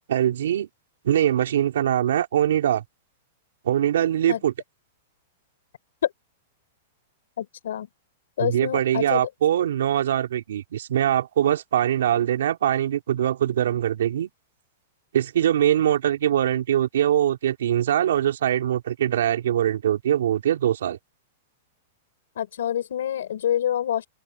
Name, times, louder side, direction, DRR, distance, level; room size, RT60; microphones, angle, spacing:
voice 1, 0.1-0.7 1.0-2.8 3.7-4.5 8.4-14.3 15.1-21.0, right 10 dB, 80° right, 3.5 m, -22 dB
voice 2, 7.4-7.9 8.4-9.2 22.4-24.1, left 10 dB, 85° left, 5.5 m, -26 dB
open air
supercardioid pair, 170°, 0 cm